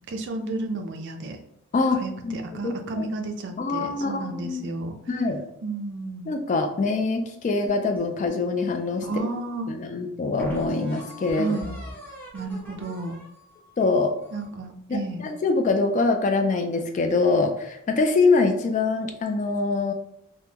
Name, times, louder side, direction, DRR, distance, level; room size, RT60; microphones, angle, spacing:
voice 1, 0.1-1.4 1.9-5.0 5.6-6.3 9.0-9.8 11.4-11.7 12.3-13.2 14.3-15.3, right 2 dB, 55° right, 4 dB, 0.5 m, -32 dB
voice 2, 1.7-2.4 2.6-3.1 3.6-4.8 5.1-5.4 6.3-9.0 9.7-11.6 13.8-14.1 14.9-19.9, left 3 dB, 35° left, 5 dB, 0.3 m, -24 dB
sound 1, 7.7-9.2 9.8-9.9 10.4-14.6, left 1 dB, 10° left, 0.7 m, -42 dB
3.5 x 2.1 x 2.8 m, 0.79 s
head